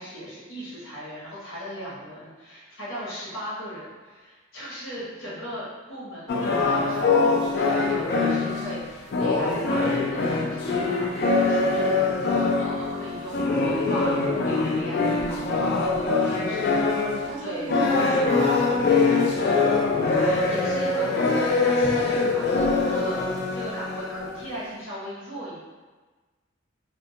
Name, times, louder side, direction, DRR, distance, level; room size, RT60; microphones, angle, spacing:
voice 1, 0.0-14.1 14.5-16.7 17.2-17.9 19.9-21.3 21.5-25.6, equal, 85° left, -8 dB, 0.9 m, -38 dB
sound 1, 6.3-17.4 17.7-24.5, left 3 dB, 55° left, 0.3 m, -23 dB
voice 2, 16.0-16.7 17.3-19.7, right 2 dB, 40° right, -2 dB, 0.4 m, -36 dB
2.2 x 2.1 x 2.7 m, 1.3 s
head